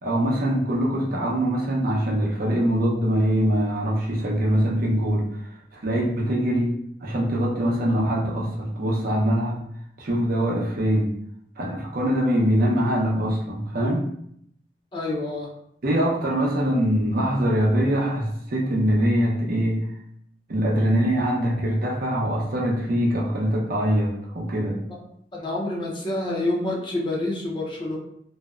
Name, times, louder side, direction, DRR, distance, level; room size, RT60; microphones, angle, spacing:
voice 1, 0.0-5.4 5.7-6.7 7.0-9.6 10.0-11.1 11.6-14.0 15.8-19.8 20.5-24.8, equal, 55° right, -2 dB, 0.6 m, -23 dB
voice 2, 14.9-15.5 25.3-28.0, left 2 dB, 25° left, -3 dB, 0.6 m, -27 dB
2.6 x 2.1 x 2.3 m, 0.71 s
head